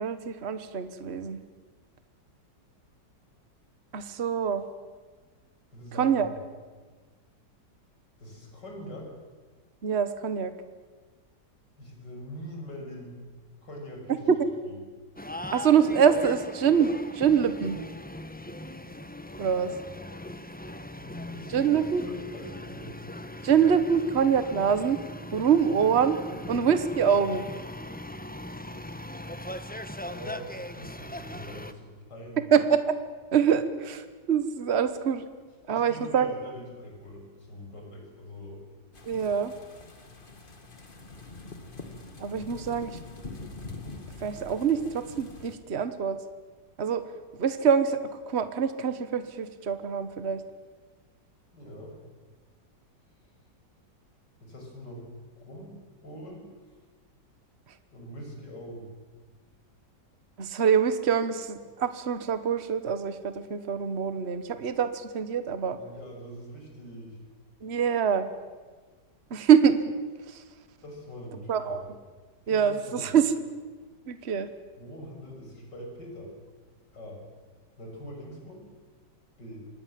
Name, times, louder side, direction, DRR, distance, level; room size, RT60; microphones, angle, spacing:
voice 1, 0.0-1.4 3.9-4.6 6.0-6.3 9.8-10.5 15.5-17.8 19.4-19.7 21.5-22.1 23.4-25.0 25.3-26.2 26.5-27.4 32.5-32.9 33.3-35.2 35.7-36.3 39.1-39.5 42.2-42.9 44.2-46.2 46.8-47.0 47.4-48.0 48.3-50.4 60.4-65.8 67.6-68.3 69.3-69.8 71.5-71.8 72.5-73.3 74.1-74.5, right 7 dB, 40° right, 11 dB, 1.4 m, -25 dB
voice 2, 5.7-6.2 8.2-9.1 11.8-13.2 13.6-14.2 14.7-14.8 20.7-23.0 23.7-23.9 25.7-25.9 26.2-26.7 30.1-32.5 35.7-38.6 51.5-52.0 54.4-56.8 57.9-58.9 65.7-67.2 70.8-71.9 72.5-73.1 74.8-76.3 76.9-77.2 77.8-78.7 79.4-79.7, equal, 75° left, 0 dB, 6.8 m, -43 dB
sound 1, 15.2-31.7, left 1 dB, 10° left, 0.7 m, -40 dB
sound 2, 38.9-45.5, left 3 dB, 30° left, 2.0 m, -44 dB
25.5 x 20.5 x 7.7 m, 1.4 s
omnidirectional pair, 1.9 m